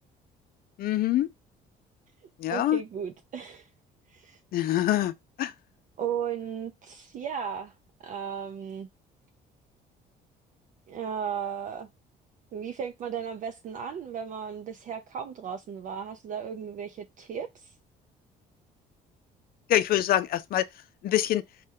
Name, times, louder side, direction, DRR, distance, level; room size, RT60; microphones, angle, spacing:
voice 1, 0.8-1.3 2.4-2.8 4.5-5.5 19.7-20.7 21.0-21.4, left 13 dB, 60° left, 0.5 m, -25 dB
voice 2, 2.5-3.7 4.1-4.4 6.0-7.7 8.0-8.9 10.9-11.9 12.5-17.7, right 8 dB, 50° right, 0.5 m, -35 dB
4.2 x 2.2 x 3.5 m
cardioid pair, 110°, 17 cm